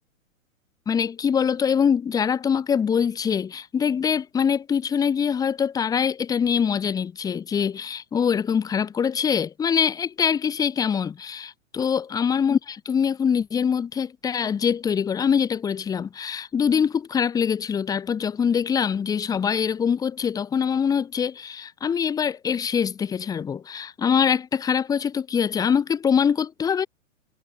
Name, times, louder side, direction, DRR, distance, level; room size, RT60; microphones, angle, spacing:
voice 1, 0.9-26.9, left 7 dB, 10° left, 0.7 m, -24 dB
hypercardioid pair, 125°, 40 cm